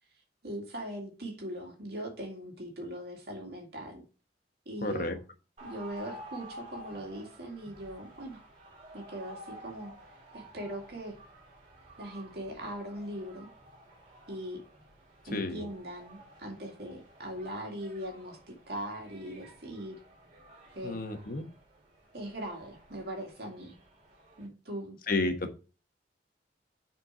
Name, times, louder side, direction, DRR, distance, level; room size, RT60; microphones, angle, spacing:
voice 1, 0.4-4.0 4.7-5.2 5.6-8.4 8.9-9.9 10.3-11.2 12.0-13.5 14.3-14.6 15.2-20.0 20.7-21.0 22.1-23.8 24.4-25.0, equal, 60° right, 1 dB, 2.3 m, -40 dB
voice 2, 4.8-5.1 15.3-15.6 20.8-21.5 25.1-25.6, left 2 dB, 55° left, 6 dB, 1.3 m, -31 dB
sound 1, 5.6-24.5, right 1 dB, 40° right, 3.5 m, -52 dB
6.8 x 4.5 x 6.1 m, 0.33 s
head